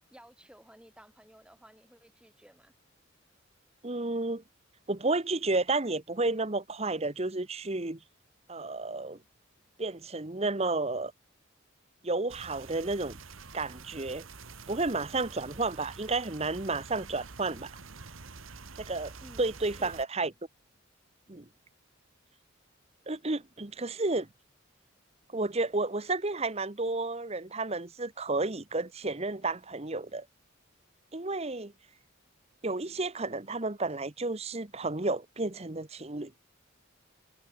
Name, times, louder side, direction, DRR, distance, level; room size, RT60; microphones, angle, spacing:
voice 1, 0.1-2.7 19.2-20.0, equal, 5° right, 3.8 m, -55 dB
voice 2, 3.8-4.4 4.9-8.0 8.5-9.2 9.8-11.1 12.0-13.2 13.5-14.3 14.7-17.7 18.8-19.1 19.4-20.3 21.3-21.5 23.1-24.3 25.3-30.2 31.1-31.7 32.6-36.3, right 3 dB, 30° right, 1.2 m, -31 dB
sound 1, 12.3-20.0, right 4 dB, 85° right, 1.8 m, -47 dB
head